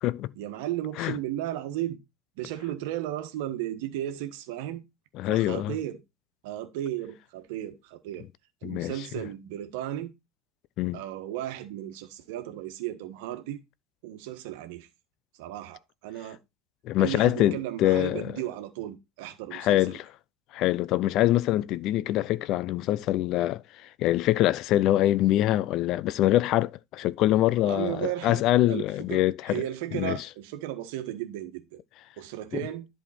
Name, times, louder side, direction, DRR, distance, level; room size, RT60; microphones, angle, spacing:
voice 1, 0.3-2.0 2.4-4.8 5.2-6.0 6.4-8.3 8.6-10.1 10.9-13.6 14.0-14.9 15.4-16.4 17.0-20.0 27.6-28.4 28.7-31.8 32.2-32.9, right 13 dB, 65° right, 1.4 m, -35 dB
voice 2, 5.2-5.7 8.6-8.9 10.8-11.0 16.8-18.3 19.5-20.0 20.5-29.6 29.9-30.2, left 14 dB, 50° left, 0.4 m, -24 dB
11.0 x 4.6 x 4.2 m
hypercardioid pair, 80°, 0 cm